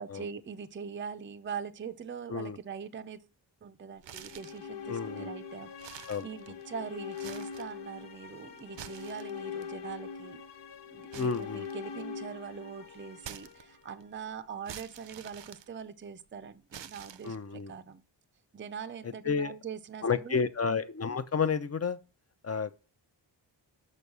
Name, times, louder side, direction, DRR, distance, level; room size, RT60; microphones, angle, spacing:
voice 1, 0.0-3.3 3.6-10.4 10.9-18.0 18.5-20.4, right 6 dB, 25° right, 0.5 m, -42 dB
sound 1, 4.0-4.7 5.2-5.3 5.7-6.7 7.1-7.8 8.6-9.6 11.1-12.2 13.2-14.0 14.7-16.2 16.7-17.6, right 10 dB, 75° right, 0.6 m, -47 dB
sound 2, 4.1-14.3, left 6 dB, 70° left, 1.1 m, -43 dB
voice 2, 4.9-5.3 6.1-6.3 11.1-11.7 17.2-17.7 19.2-19.5 20.0-22.0 22.4-22.8, left 5 dB, 35° left, 0.6 m, -31 dB
6.3 x 5.4 x 6.8 m
wide cardioid pair, 110°, 43 cm